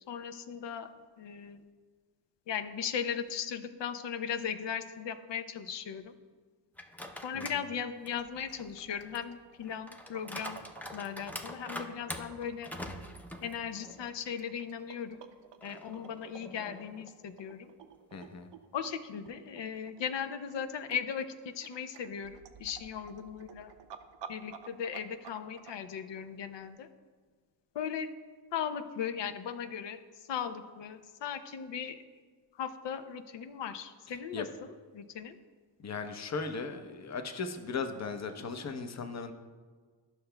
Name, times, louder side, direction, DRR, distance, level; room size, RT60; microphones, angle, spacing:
voice 1, 0.0-1.6 2.5-6.1 7.2-10.6 10.9-12.7 13.4-15.2 15.6-17.7 18.7-23.7 24.3-26.9 27.7-28.1 28.5-32.0 32.5-34.5 34.9-35.4, left 8 dB, 70° left, 10 dB, 0.6 m, -38 dB
sound 1, 6.7-7.6 8.1-14.1 14.5-14.6 15.6-17.1, left 1 dB, 5° left, 0.6 m, -45 dB
sound 2, 8.2-25.7, right 8 dB, 70° right, 0.6 m, -52 dB
voice 2, 18.1-18.5 34.3-34.4 35.8-39.3, left 4 dB, 35° left, 6 dB, 0.7 m, -37 dB
12.0 x 5.7 x 2.2 m, 1.5 s
cardioid pair, 65°, 45 cm